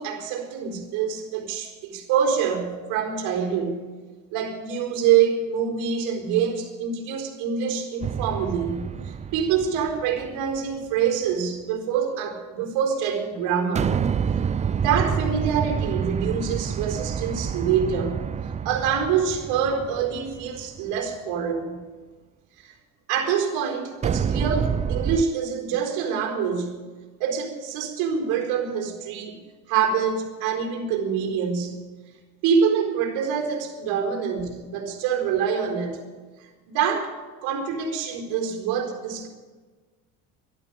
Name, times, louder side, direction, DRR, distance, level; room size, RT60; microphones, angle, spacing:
voice 1, 0.0-3.8 4.3-14.0 14.8-18.2 18.6-21.8 22.6-22.7 23.1-26.8 27.2-29.4 29.7-31.8 32.4-36.0 36.7-37.2 37.4-39.3, right 7 dB, 75° right, 2 dB, 4.4 m, -25 dB
sound 1, 8.0-10.6 13.7-21.0 24.0-25.2, right 7 dB, 20° right, 0.4 m, -28 dB
12.5 x 12.0 x 9.0 m, 1.3 s
supercardioid pair, 110°, 36 cm